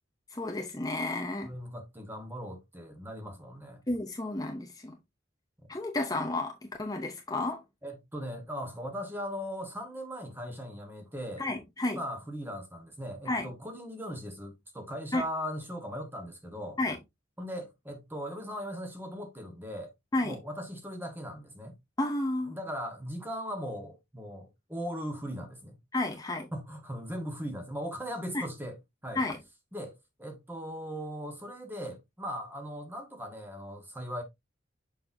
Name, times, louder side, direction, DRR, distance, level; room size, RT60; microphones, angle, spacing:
voice 1, 0.3-1.5 3.9-5.0 5.7-7.6 11.4-12.0 13.3-13.5 15.1-15.2 16.8-17.0 20.1-20.4 22.0-22.6 25.9-26.5 28.3-28.4 29.1-29.4, left 2 dB, 20° left, 0.6 m, -31 dB
voice 2, 1.4-3.8 7.8-11.4 11.8-16.8 17.4-19.9 20.2-21.7 22.5-25.8 26.5-28.8 29.0-29.2 29.7-34.2, equal, 10° right, 1.4 m, -39 dB
6.9 x 5.6 x 2.6 m
head